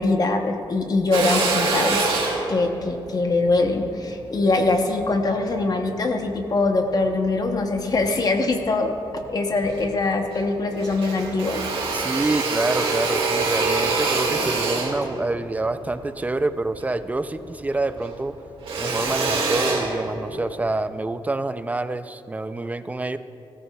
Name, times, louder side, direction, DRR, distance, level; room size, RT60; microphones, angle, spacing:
voice 1, 0.0-2.1 2.5-11.6, left 3 dB, 40° left, 4 dB, 0.9 m, -23 dB
Drill, 1.1-5.6 6.2-7.4 7.8-8.8 9.1-9.2 9.5-10.5 10.7-17.4 17.7-20.6, right 3 dB, 75° right, 1.9 m, -26 dB
voice 2, 11.9-18.4 18.8-23.2, right 2 dB, 15° right, 12 dB, 0.4 m, -27 dB
16.5 x 13.5 x 2.3 m, 2.7 s
wide cardioid pair, 125°, 9 cm